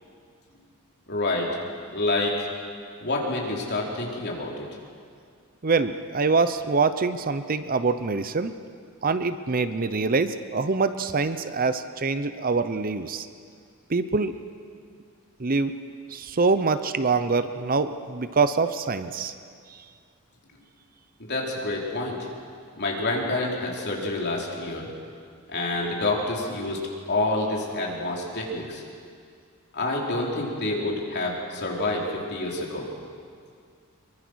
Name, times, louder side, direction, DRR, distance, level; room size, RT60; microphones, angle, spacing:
voice 1, 1.1-1.5 1.9-2.5 3.0-4.7 21.2-22.3 22.8-24.9 25.5-26.8 27.1-28.8 29.7-32.9, left 2 dB, 50° left, -1 dB, 3.8 m, -28 dB
voice 2, 5.6-8.5 9.0-13.3 13.9-14.3 15.4-15.7 16.1-19.3, right 4 dB, 40° right, 11 dB, 0.7 m, -24 dB
23.5 x 23.0 x 6.4 m, 2.2 s
head